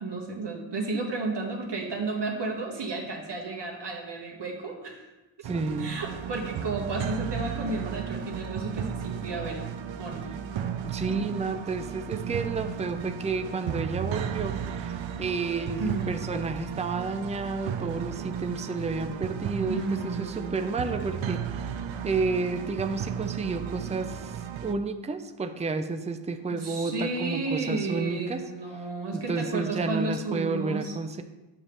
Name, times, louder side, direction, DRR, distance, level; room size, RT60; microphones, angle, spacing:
voice 1, 0.0-5.1 5.8-9.6 10.0-10.2 11.1-11.2 15.8-16.2 19.7-20.5 26.6-30.9, right 3 dB, 60° right, 0 dB, 1.6 m, -32 dB
voice 2, 5.4-5.9 10.8-21.7 22.0-24.4 24.6-28.4 29.1-31.2, right 4 dB, 15° right, 7 dB, 0.4 m, -31 dB
sound 1, 5.4-24.7, right 8 dB, 80° right, 0.6 m, -34 dB
9.5 x 7.0 x 3.3 m, 1.1 s
wide cardioid pair, 140°, 46 cm